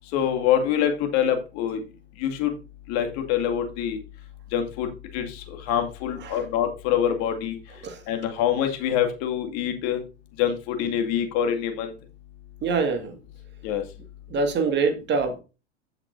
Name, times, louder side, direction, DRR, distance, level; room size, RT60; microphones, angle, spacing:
voice 1, 0.1-1.8 2.2-2.5 2.9-4.0 4.5-7.6 8.1-10.0 10.4-11.9 13.6-13.8, left 9 dB, 45° left, 5 dB, 2.2 m, -25 dB
voice 2, 12.6-13.1 14.3-15.4, right 4 dB, 30° right, 6 dB, 1.9 m, -24 dB
15.0 x 6.0 x 2.6 m, 0.30 s
figure-of-eight pair, 90°, 35 cm